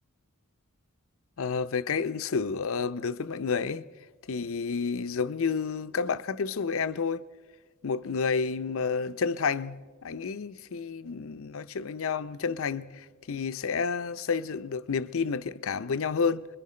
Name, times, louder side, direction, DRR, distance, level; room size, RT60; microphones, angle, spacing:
voice 1, 1.4-3.9 4.3-7.2 7.8-16.5, left 5 dB, 65° left, 0.6 m, -30 dB
29.0 x 22.5 x 4.3 m
head